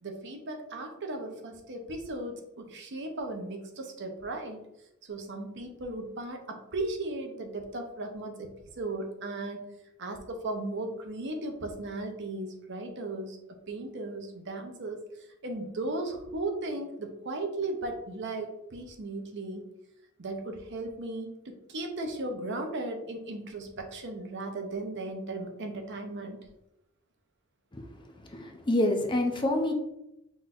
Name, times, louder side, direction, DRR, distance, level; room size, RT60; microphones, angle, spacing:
voice 1, 0.0-4.7 5.0-9.7 10.0-15.0 15.4-19.6 20.2-26.5, right 2 dB, 60° right, 4 dB, 0.7 m, -36 dB
voice 2, 28.2-29.7, left 1 dB, 20° left, 4 dB, 0.5 m, -27 dB
5.8 x 3.1 x 2.5 m, 0.85 s
head